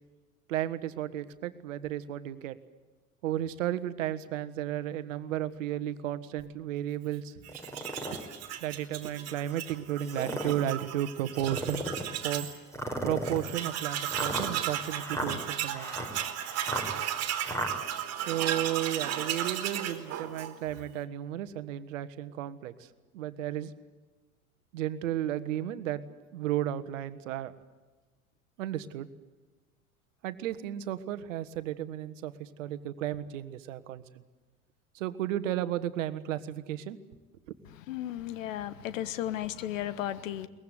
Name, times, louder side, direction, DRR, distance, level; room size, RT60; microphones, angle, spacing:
voice 1, 0.5-2.6 3.2-7.4 8.1-8.2 8.6-11.9 12.2-12.5 13.0-15.9 18.3-22.9 23.1-23.7 24.7-26.0 26.3-27.5 28.6-29.1 30.2-34.0 34.9-37.0 37.5-37.6, right 12 dB, 60° right, 11 dB, 1.5 m, -33 dB
Tools, 7.4-12.6 12.9-13.0 13.2-20.8, right 11 dB, 35° right, 3.0 m, -35 dB
sound 1, 7.5-8.2 8.8-8.9 9.9-10.6 11.3-12.1 12.7-17.7, equal, 5° left, 4.2 m, -35 dB
voice 2, 37.9-40.5, left 12 dB, 60° left, 15 dB, 1.5 m, -34 dB
22.5 x 20.5 x 9.4 m, 1.2 s
figure-of-eight pair, 75°, 43 cm